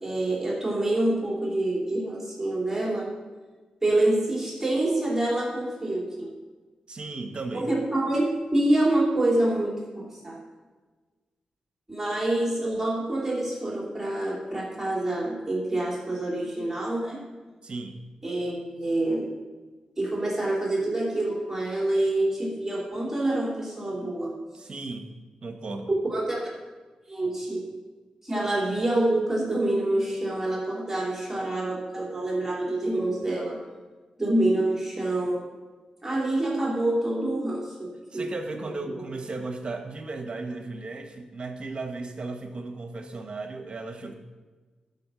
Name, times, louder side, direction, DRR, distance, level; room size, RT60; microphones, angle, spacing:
voice 1, 0.0-3.1 3.8-6.3 7.5-10.4 11.9-17.2 18.2-19.3 20.0-24.3 25.9-26.4 27.1-27.6 28.2-33.6 34.2-35.4 36.0-38.3, right 1 dB, 15° right, -4 dB, 3.1 m, -26 dB
voice 2, 6.9-7.7 17.6-18.0 24.5-25.1 25.4-25.9 38.1-44.1, right 3 dB, 45° right, 5 dB, 1.3 m, -35 dB
12.5 x 5.6 x 6.3 m, 1.3 s
cardioid pair, 75°, 2 cm